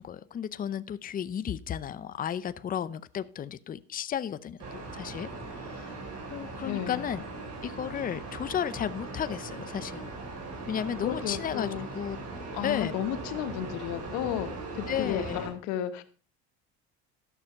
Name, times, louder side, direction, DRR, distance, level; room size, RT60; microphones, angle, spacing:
voice 1, 0.0-5.3 5.6-5.9 6.3-7.2 7.6-10.1 10.7-11.7 11.9-12.2 12.6-12.9 14.9-15.4, left 9 dB, 30° left, 13 dB, 0.6 m, -33 dB
sound 1, 4.6-15.5, right 3 dB, 60° right, 4.0 m, -39 dB
voice 2, 6.6-7.1 11.0-11.9 12.5-16.0, left 11 dB, 85° left, 9 dB, 1.3 m, -33 dB
12.5 x 6.6 x 5.7 m, 0.39 s
cardioid pair, 120°, 29 cm